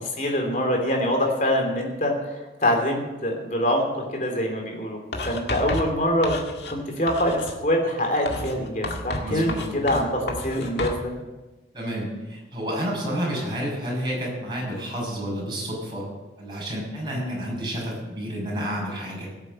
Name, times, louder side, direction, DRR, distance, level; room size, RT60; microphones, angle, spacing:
voice 1, 0.0-2.3 2.6-3.9 4.1-5.0 5.2-6.4 6.7-11.1 17.1-17.4, equal, 45° left, 1 dB, 3.4 m, -24 dB
Writing, 5.1-6.8 7.1-7.6 8.3-11.0, left 2 dB, 75° left, 1.9 m, -32 dB
voice 2, 9.2-9.6 11.7-16.0 16.4-19.3, equal, 25° right, -5 dB, 6.3 m, -30 dB
17.5 x 8.2 x 7.7 m, 1.1 s
head